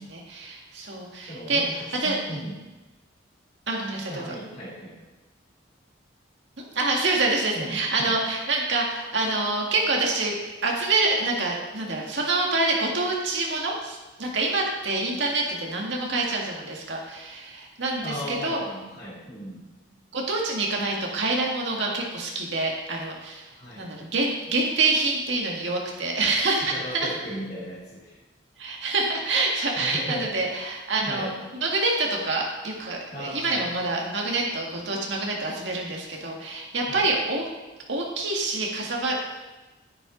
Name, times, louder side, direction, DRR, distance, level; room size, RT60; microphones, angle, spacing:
voice 1, 0.0-2.4 3.7-4.2 6.6-10.4 10.6-18.6 20.1-23.5 23.8-27.1 28.6-31.3 31.6-37.4 37.9-39.2, right 3 dB, 70° right, -1 dB, 1.8 m, -26 dB
voice 2, 1.3-2.6 4.1-4.9 7.5-8.1 18.0-19.6 23.5-23.9 26.6-28.2 29.7-30.3 31.0-31.3 33.1-33.8 36.9-37.1, equal, 35° left, -10 dB, 3.2 m, -36 dB
10.5 x 9.8 x 3.9 m, 1.1 s
head